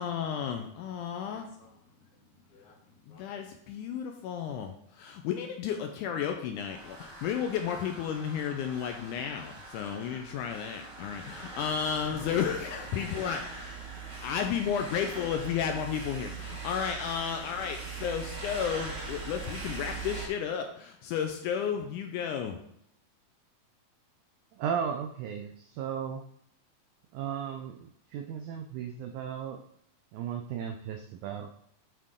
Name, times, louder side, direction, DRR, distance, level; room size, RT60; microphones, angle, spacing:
voice 1, 0.0-1.5 3.1-13.7 14.2-22.6, left 8 dB, 80° left, 4 dB, 1.9 m, -33 dB
voice 2, 0.8-3.5 12.1-13.5 13.8-14.4, left 2 dB, 55° left, -2 dB, 1.0 m, -53 dB
sound 1, 6.5-20.3, right 3 dB, 55° right, 3.7 m, -42 dB
voice 3, 24.5-26.2 27.1-29.6 30.1-31.5, right 8 dB, 90° right, 4 dB, 1.7 m, -35 dB
8.6 x 3.7 x 3.7 m, 0.72 s
omnidirectional pair, 4.0 m